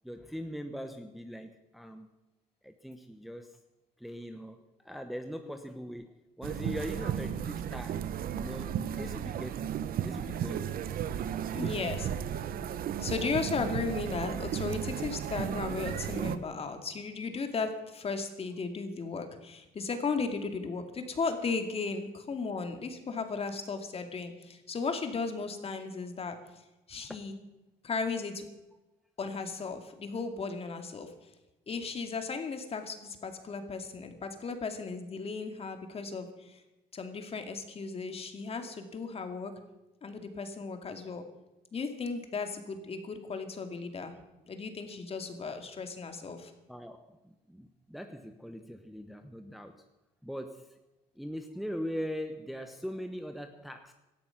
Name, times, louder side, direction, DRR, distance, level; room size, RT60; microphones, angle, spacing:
voice 1, 0.0-2.1 2.6-3.6 4.0-9.7 10.0-10.8 11.5-12.1 46.7-49.8 50.2-50.8 51.1-53.9, equal, ahead, 6 dB, 1.0 m, -41 dB
sound 1, 6.4-16.4, right 9 dB, 60° right, 1.0 m, -34 dB
voice 2, 11.5-12.1 13.0-26.4 26.9-27.3 27.8-28.4 29.2-31.1 31.7-36.6 36.9-39.5 40.0-41.2 41.7-44.1 44.5-46.5, left 4 dB, 35° left, 6 dB, 2.3 m, -35 dB
18.0 x 13.0 x 5.9 m, 1.0 s
cardioid pair, 110°, 17 cm